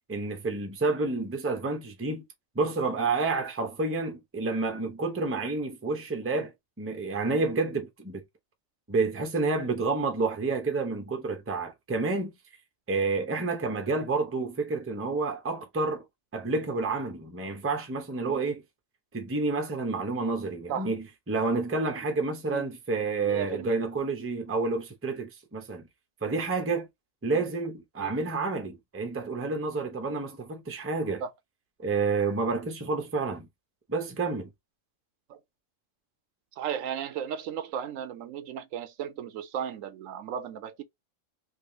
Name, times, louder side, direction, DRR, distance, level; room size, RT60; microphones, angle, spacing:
voice 1, 0.1-2.2 2.5-6.5 6.8-8.2 8.9-12.3 12.9-16.0 16.3-18.6 19.1-25.9 26.2-26.9 27.2-31.2 31.8-33.5 33.9-34.5, right 3 dB, 15° right, 0.5 m, -29 dB
voice 2, 23.2-23.7 28.0-28.1 31.2-31.3 35.3-35.4 36.6-40.8, right 9 dB, 75° right, 1.0 m, -35 dB
3.4 x 2.7 x 2.7 m
omnidirectional pair, 1.4 m